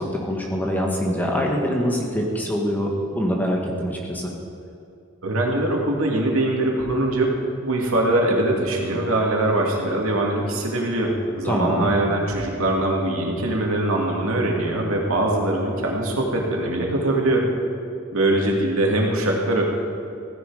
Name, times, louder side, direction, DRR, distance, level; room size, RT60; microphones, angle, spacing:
voice 1, 0.0-4.3 11.4-11.9, equal, 10° left, 0 dB, 1.4 m, -24 dB
voice 2, 5.2-7.3 7.6-17.5 18.1-19.6, right 1 dB, 80° right, -1 dB, 2.4 m, -22 dB
16.0 x 10.5 x 4.9 m, 2.5 s
head